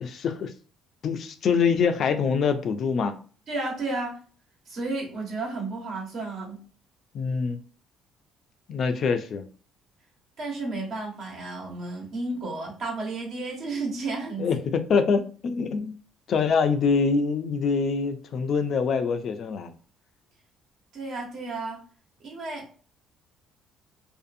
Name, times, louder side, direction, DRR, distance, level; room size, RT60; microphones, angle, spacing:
voice 1, 0.0-0.5 1.0-3.2 7.1-7.6 8.7-9.5 14.4-16.0 16.3-19.7, left 5 dB, 55° left, 8 dB, 0.4 m, -24 dB
voice 2, 3.5-4.2 4.7-6.6 10.4-14.5 20.9-21.8 22.2-22.6, right 3 dB, 55° right, -1 dB, 1.1 m, -32 dB
2.6 x 2.4 x 2.5 m, 0.41 s
cardioid pair, 110°, 0 cm